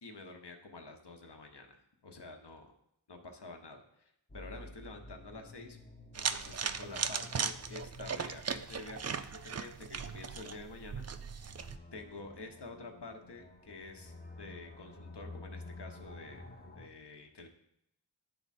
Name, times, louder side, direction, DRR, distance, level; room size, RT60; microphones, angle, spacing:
voice 1, 0.0-2.7 3.1-5.8 6.2-11.1 11.4-11.5 11.9-16.4 16.7-17.5, left 3 dB, 60° left, 4 dB, 1.0 m, -49 dB
sound 1, 4.3-16.9, left 2 dB, 20° left, 0.7 m, -52 dB
sound 2, 6.1-11.8, right 6 dB, 35° right, 0.4 m, -38 dB
9.7 x 3.6 x 4.2 m, 0.78 s
wide cardioid pair, 40°, 46 cm